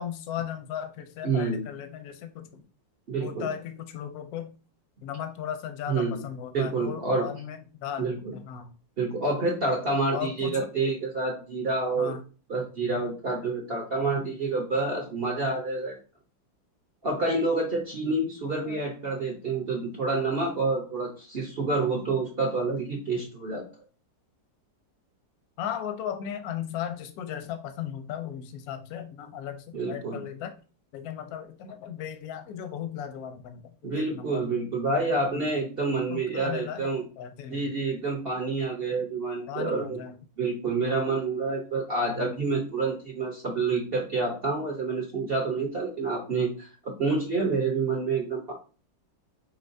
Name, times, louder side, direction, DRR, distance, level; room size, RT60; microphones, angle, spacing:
voice 1, 0.0-2.5 3.2-4.5 5.0-8.7 10.1-10.7 12.0-12.2 12.8-13.0 17.9-18.2 18.6-18.8 25.6-30.5 30.9-34.4 35.3-35.5 36.1-37.6 39.5-40.2 42.2-42.4, left 9 dB, 70° left, 9 dB, 1.0 m, -36 dB
voice 2, 1.2-1.6 3.1-3.5 5.9-6.2 6.5-7.3 8.0-8.3 9.0-12.2 12.5-16.0 17.0-23.6 29.7-30.2 33.8-37.0 37.5-40.0 40.4-46.7 47.0-48.5, right 3 dB, 50° right, -1 dB, 0.7 m, -28 dB
5.5 x 2.8 x 2.6 m, 0.36 s
omnidirectional pair, 2.0 m